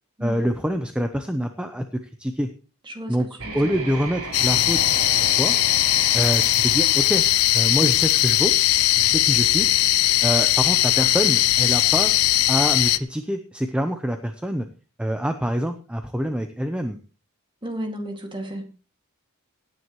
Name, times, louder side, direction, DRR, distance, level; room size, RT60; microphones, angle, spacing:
voice 1, 0.2-2.5 3.1-3.3 3.5-5.6 6.1-7.2 7.5-8.5 9.0-9.7 10.2-12.1 12.5-14.7 15.0-17.0, equal, 5° right, 7 dB, 0.7 m, -26 dB
sound 1, 3.4-8.3, right 3 dB, 70° right, 3.7 m, -35 dB
sound 2, 4.3-13.0, left 15 dB, 90° left, 0.6 m, -19 dB
voice 2, 17.6-18.6, right 1 dB, 20° right, 4 dB, 2.3 m, -32 dB
18.0 x 9.6 x 3.1 m, 0.35 s
head